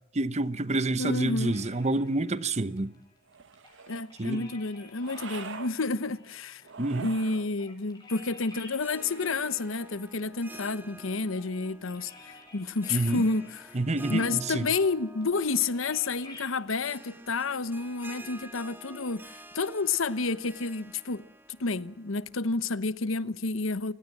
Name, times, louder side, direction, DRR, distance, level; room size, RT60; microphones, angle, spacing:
voice 1, 0.1-2.9 4.2-4.5 6.8-7.1 12.9-13.2 13.7-14.7, right 2 dB, 35° right, 0.9 m, -28 dB
voice 2, 1.0-1.6 3.9-6.6 6.9-13.7 14.0-21.3 21.6-23.9, left 3 dB, 75° left, 1.0 m, -30 dB
sound 1, 1.2-16.6, left 3 dB, 20° left, 7.2 m, -53 dB
sound 2, 3.3-4.1 5.0-5.7 6.6-7.5 8.8-9.7, right 5 dB, 65° right, 1.4 m, -44 dB
Harp, 8.7-22.5, right 1 dB, 10° right, 1.6 m, -49 dB
29.5 x 17.5 x 7.4 m
head